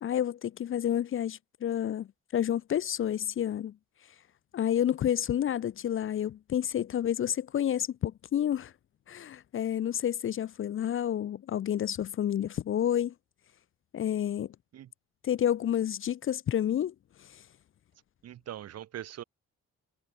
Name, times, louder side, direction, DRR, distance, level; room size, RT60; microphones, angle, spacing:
voice 1, 0.0-2.1 2.3-3.8 4.5-8.7 9.1-13.1 13.9-14.5 15.2-17.4, left 10 dB, 45° left, 0.5 m, -30 dB
voice 2, 18.2-19.2, right 11 dB, 55° right, 0.8 m, -41 dB
cardioid pair, 90°, 30 cm